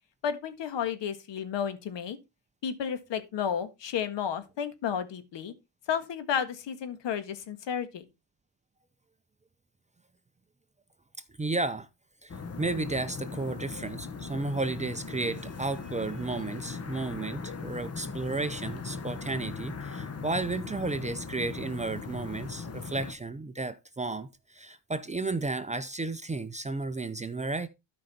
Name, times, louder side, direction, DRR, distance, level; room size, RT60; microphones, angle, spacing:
voice 1, 0.2-2.2 2.6-5.5 5.9-8.0, left 8 dB, 60° left, 1.7 m, -32 dB
voice 2, 11.4-11.9 12.2-27.7, right 3 dB, 15° right, 0.6 m, -33 dB
sound 1, 12.3-23.1, left 5 dB, 30° left, 1.2 m, -39 dB
13.0 x 5.2 x 4.2 m
cardioid pair, 135°, 50 cm